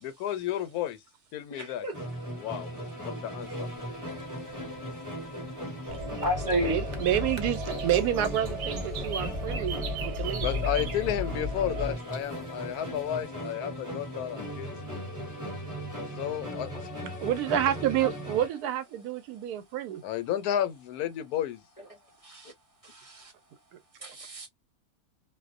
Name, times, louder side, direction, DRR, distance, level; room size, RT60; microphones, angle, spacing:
voice 1, 0.0-1.0 1.3-1.9 2.4-3.7 10.4-14.7 16.2-16.9 20.0-21.6, left 11 dB, 85° left, 1.1 m, -32 dB
voice 2, 1.5-1.9 6.2-6.8 22.2-22.5 22.8-23.3 24.0-24.5, equal, 60° left, 0.3 m, -31 dB
Musical instrument, 1.9-18.6, equal, 15° right, 0.9 m, -38 dB
sound 1, 3.4-13.2, right 6 dB, 60° right, 0.8 m, -43 dB
sound 2, 5.9-12.0, left 2 dB, 40° right, 0.5 m, -35 dB
voice 3, 6.6-10.5 17.2-20.0, right 11 dB, 90° right, 1.1 m, -29 dB
2.6 x 2.1 x 2.4 m
omnidirectional pair, 1.6 m